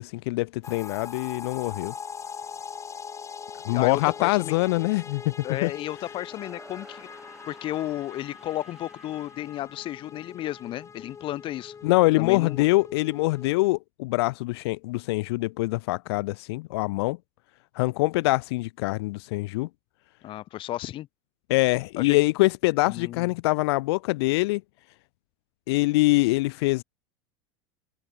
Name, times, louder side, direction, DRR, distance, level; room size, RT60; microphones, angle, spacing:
voice 1, 0.0-1.9 3.7-5.3 5.6-5.7 11.8-17.2 17.7-19.7 21.5-24.6 25.7-26.8, left 21 dB, 70° left, 0.5 m, -24 dB
sound 1, 0.6-13.7, left 6 dB, 20° left, 5.0 m, -42 dB
voice 2, 3.7-4.5 5.4-7.1 7.5-11.7 12.2-12.7 20.2-21.1 22.0-22.2 22.9-23.3, left 14 dB, 40° left, 1.0 m, -33 dB
sound 2, 6.2-10.4, right 1 dB, 5° right, 7.4 m, -52 dB
supercardioid pair, 125°, 14 cm